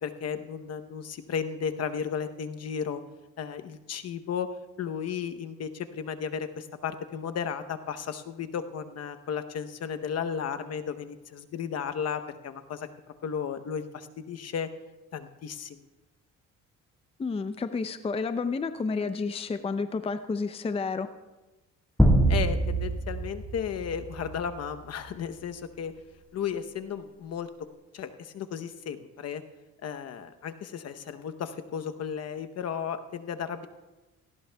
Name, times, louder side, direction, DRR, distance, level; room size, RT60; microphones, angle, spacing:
voice 1, 0.0-3.0 3.4-4.5 4.8-12.9 13.2-14.7 15.1-15.8 22.3-25.9 26.3-27.5 27.9-29.4 29.8-33.7, left 7 dB, 55° left, 8 dB, 0.9 m, -34 dB
voice 2, 17.2-21.1, left 4 dB, 20° left, 10 dB, 0.5 m, -30 dB
sound 1, 22.0-24.5, right 1 dB, 5° left, 1.5 m, -24 dB
18.0 x 15.5 x 2.3 m, 1.1 s
cardioid pair, 90°, 31 cm